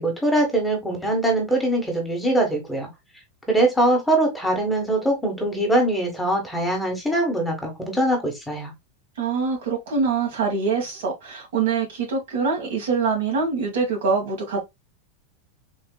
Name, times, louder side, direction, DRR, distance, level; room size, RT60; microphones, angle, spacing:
voice 1, 0.0-2.9 3.5-8.7, right 1 dB, ahead, 1.4 m, -22 dB
voice 2, 9.2-14.7, right 5 dB, 75° right, 1.8 m, -24 dB
3.9 x 2.7 x 2.3 m
supercardioid pair, 130°, 0 cm